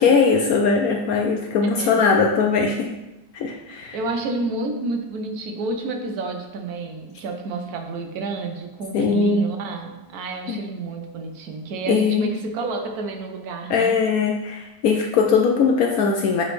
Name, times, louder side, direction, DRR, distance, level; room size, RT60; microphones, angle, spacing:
voice 1, 0.0-2.9 3.3-4.0 8.9-9.5 10.5-10.6 11.9-12.3 13.7-16.4, left 5 dB, 70° left, 2 dB, 0.8 m, -20 dB
voice 2, 3.9-13.9, right 3 dB, 60° right, 4 dB, 1.2 m, -30 dB
7.6 x 4.0 x 3.2 m, 1.0 s
omnidirectional pair, 2.0 m